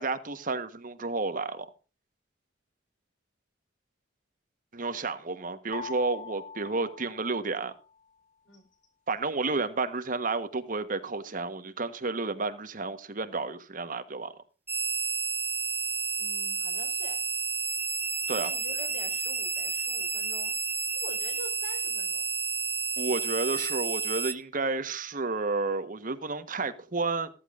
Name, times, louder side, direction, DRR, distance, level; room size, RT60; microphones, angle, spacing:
voice 1, 0.0-1.7 4.7-7.7 9.1-14.3 18.3-18.5 23.0-27.3, right 3 dB, 45° right, 1.2 m, -31 dB
sound 1, 5.7-7.9, left 5 dB, 40° left, 1.2 m, -43 dB
sound 2, 14.7-24.3, right 5 dB, 10° right, 0.9 m, -31 dB
voice 2, 16.2-17.2 18.4-20.5 20.9-22.3, left 1 dB, 90° left, 4.6 m, -46 dB
14.5 x 13.5 x 2.5 m
head